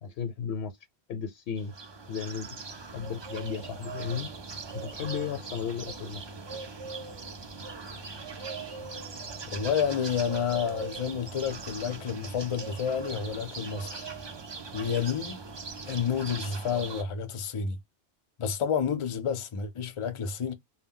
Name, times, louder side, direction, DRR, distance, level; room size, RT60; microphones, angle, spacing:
voice 1, 0.0-0.8 1.1-1.7 2.1-2.5 2.9-4.3 4.7-6.2, left 7 dB, 75° left, 0.8 m, -34 dB
sound 1, 1.6-17.0, right 4 dB, 45° right, 0.3 m, -40 dB
voice 2, 9.5-14.1 14.7-15.4 15.9-17.8 18.4-20.5, left 7 dB, 45° left, 0.4 m, -30 dB
2.3 x 2.1 x 3.6 m
omnidirectional pair, 1.1 m